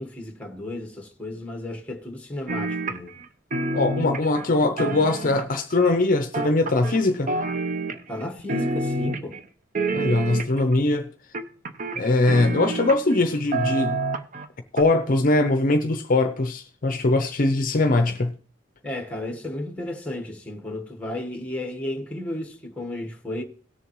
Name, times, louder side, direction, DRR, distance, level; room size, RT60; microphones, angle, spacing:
voice 1, 0.0-3.1 8.1-9.4 18.8-23.4, left 1 dB, 5° left, 1.3 m, -33 dB
sound 1, 2.5-3.3 3.5-5.7 6.3-7.0 7.3-8.2 8.5-9.4 9.7-10.7 11.3-13.2 13.5-14.5 14.8-14.9, right 2 dB, 45° right, 0.7 m, -28 dB
voice 2, 3.7-7.3 9.9-11.1 12.0-14.0 14.7-18.3, left 2 dB, 45° left, 0.6 m, -21 dB
17.5 x 6.9 x 3.0 m
head